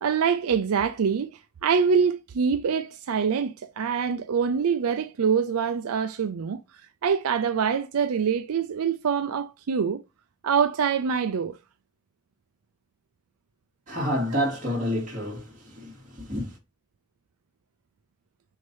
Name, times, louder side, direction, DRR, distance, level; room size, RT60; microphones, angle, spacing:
voice 1, 0.0-6.6 7.0-10.0 10.4-11.6, right 6 dB, 75° right, 0.4 m, -25 dB
voice 2, 13.9-16.6, equal, 35° right, 2.7 m, -29 dB
6.3 x 2.8 x 5.4 m
head